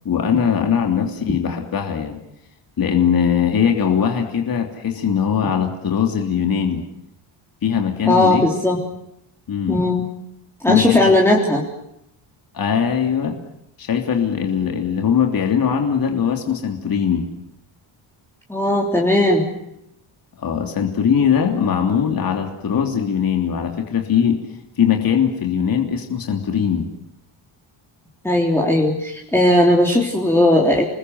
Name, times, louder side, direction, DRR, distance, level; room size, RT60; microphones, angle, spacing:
voice 1, 0.0-2.2 2.8-6.8 7.6-8.4 9.5-9.8 10.7-11.1 12.5-13.3 13.8-17.3 20.4-24.4 24.8-26.9, left 7 dB, 45° left, 3 dB, 3.1 m, -20 dB
voice 2, 8.1-8.8 9.7-10.1 10.6-11.6 18.5-19.5 28.2-30.9, left 1 dB, 5° left, -2 dB, 3.4 m, -17 dB
28.5 x 20.5 x 7.9 m, 0.80 s
cardioid pair, 140°, 49 cm